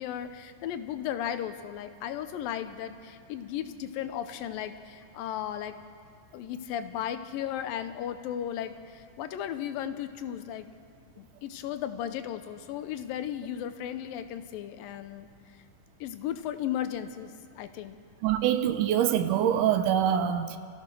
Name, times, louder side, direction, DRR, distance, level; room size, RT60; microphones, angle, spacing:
voice 1, 0.0-5.8 6.3-10.7 11.2-15.3 16.0-18.0, left 10 dB, 85° left, 10 dB, 2.6 m, -35 dB
voice 2, 18.2-20.6, right 10 dB, 75° right, 9 dB, 2.3 m, -25 dB
27.5 x 15.5 x 6.1 m, 2.2 s
omnidirectional pair, 3.9 m